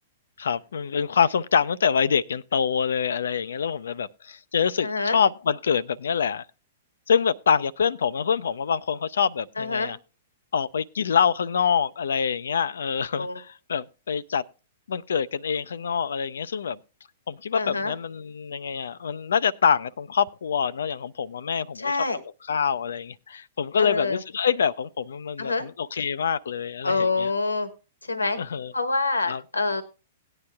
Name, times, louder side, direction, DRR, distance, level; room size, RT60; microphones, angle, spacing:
voice 1, 0.4-6.5 7.1-10.0 10.5-14.4 14.9-16.8 17.3-22.2 22.5-27.3 28.4-28.7 29.3-29.4, left 7 dB, 70° left, 0.5 m, -25 dB
voice 2, 4.8-5.2 9.6-9.9 13.2-13.3 17.5-17.9 21.8-22.2 23.8-24.2 25.4-25.7 26.8-27.7 28.0-28.4 28.7-29.8, left 3 dB, 85° left, 1.2 m, -26 dB
18.0 x 9.8 x 2.2 m
figure-of-eight pair, 105°, 0 cm